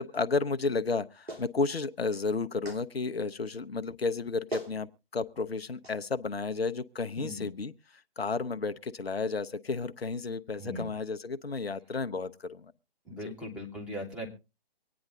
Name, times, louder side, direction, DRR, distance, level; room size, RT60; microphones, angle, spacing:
voice 1, 0.0-12.7 13.1-13.3, left 4 dB, 80° left, 10 dB, 0.7 m, -32 dB
Clapping, 1.3-1.5 2.6-2.8 4.1-4.2 4.5-4.8 5.8-6.0, right 1 dB, 85° right, 3.1 m, -39 dB
voice 2, 7.2-7.5 10.6-10.9 13.0-14.3, equal, 5° right, -4 dB, 1.6 m, -39 dB
24.0 x 9.5 x 2.6 m, 0.28 s
figure-of-eight pair, 140°, 30 cm